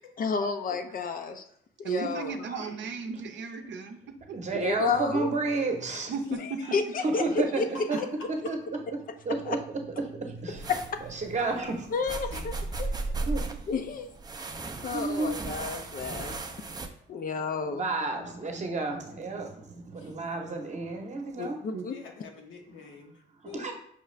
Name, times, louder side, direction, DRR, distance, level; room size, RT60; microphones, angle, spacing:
voice 1, 0.2-1.4 1.8-2.4 4.5-5.3 6.3-7.7 9.4-9.6 10.7-10.8 11.9-12.5 13.7-14.1 14.8-16.4 17.1-17.9 21.4-22.0, left 5 dB, 45° left, 7 dB, 0.4 m, -31 dB
voice 2, 1.8-4.0 6.1-6.4 18.6-18.7 21.7-21.9, right 5 dB, 65° right, 6 dB, 0.6 m, -35 dB
voice 3, 2.4-2.9 6.2-6.4 7.9-8.0 11.4-11.6 12.3-12.4 14.7-15.3 18.1-19.2 20.0-20.1 21.9-23.7, left 4 dB, 80° left, 1 dB, 1.0 m, -47 dB
voice 4, 4.3-6.1 7.0-7.6 7.9-8.0 8.5-8.6 9.3-9.6 10.0-10.7 11.1-11.8 13.3-13.5 14.9-15.4 17.7-21.6 23.6-23.7, right 3 dB, 35° right, 3 dB, 0.8 m, -31 dB
sound 1, 10.5-16.9, right 3 dB, 20° right, 0.4 m, -36 dB
5.6 x 2.4 x 3.1 m, 0.69 s
cardioid pair, 90°, 20 cm